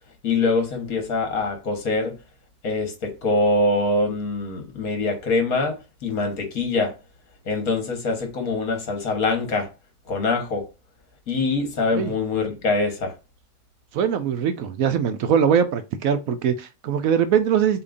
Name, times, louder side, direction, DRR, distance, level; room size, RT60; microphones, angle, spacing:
voice 1, 0.2-2.1 2.6-5.7 6.0-6.9 7.5-9.7 10.1-10.6 11.3-13.1, left 3 dB, 65° left, 1.7 m, -24 dB
voice 2, 13.9-17.8, right 8 dB, 70° right, 0.9 m, -22 dB
6.8 x 2.9 x 2.5 m
omnidirectional pair, 1.7 m